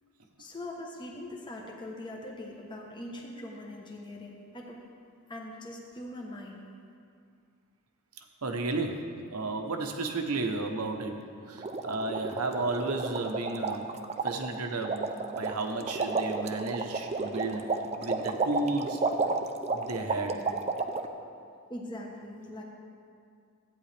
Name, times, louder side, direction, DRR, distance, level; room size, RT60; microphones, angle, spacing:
voice 1, 0.4-4.8 5.3-6.6 21.7-22.6, left 1 dB, 20° left, -1 dB, 1.0 m, -42 dB
voice 2, 8.2-14.0 14.2-19.1 19.7-20.4, right 3 dB, 90° right, 4 dB, 1.0 m, -33 dB
sound 1, 11.5-21.1, right 3 dB, 30° right, 0.5 m, -32 dB
14.0 x 9.2 x 3.4 m, 2.3 s
head